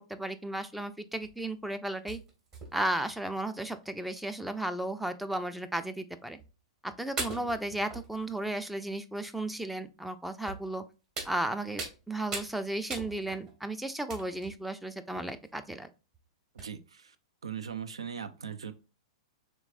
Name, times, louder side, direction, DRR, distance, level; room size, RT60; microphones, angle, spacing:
voice 1, 0.1-2.2 2.7-6.4 6.8-10.8 11.2-15.9, right 1 dB, 5° right, 0.4 m, -34 dB
sound 1, 1.2-1.5 2.1-3.1 3.8-3.9 4.2-4.3 5.3-5.4 6.4-6.5 7.2-8.6 9.3-9.4 10.5-10.7 11.2-12.0 12.3-12.5 12.9-13.5 14.1-14.6 15.1-15.5 16.1-16.2 16.6-16.7, right 3 dB, 30° right, 1.5 m, -40 dB
voice 2, 16.5-17.2 17.4-18.7, right 7 dB, 75° right, 0.4 m, -39 dB
4.5 x 3.5 x 2.4 m
figure-of-eight pair, 105°, 3 cm